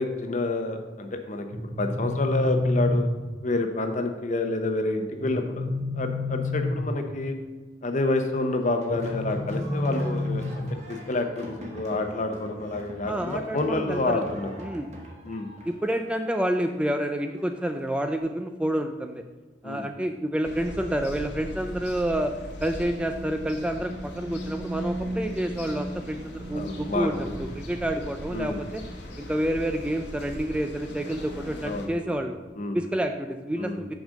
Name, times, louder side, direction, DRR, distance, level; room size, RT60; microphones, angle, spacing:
voice 1, 0.0-1.5 1.8-3.1 3.4-5.6 6.0-7.3 7.8-14.5 15.3-15.5 19.6-19.8 26.5-27.3 28.3-28.7 31.6-32.2 32.6-32.8 33.6-33.8, left 2 dB, 45° left, 6 dB, 0.8 m, -28 dB
sound 1, 1.5-3.5 5.2-7.2 8.9-10.9, left 2 dB, 70° right, 1.0 m, -29 dB
sound 2, 8.6-18.1, right 1 dB, 40° right, 1.4 m, -45 dB
voice 2, 13.1-14.2 14.6-14.9 15.6-19.2 19.6-22.3 22.6-28.8 29.2-32.4 32.7-33.9, right 1 dB, 5° right, 6 dB, 0.3 m, -29 dB
sound 3, 20.4-31.9, equal, 85° left, 1.5 m, -37 dB
6.3 x 5.1 x 6.3 m, 1.2 s
head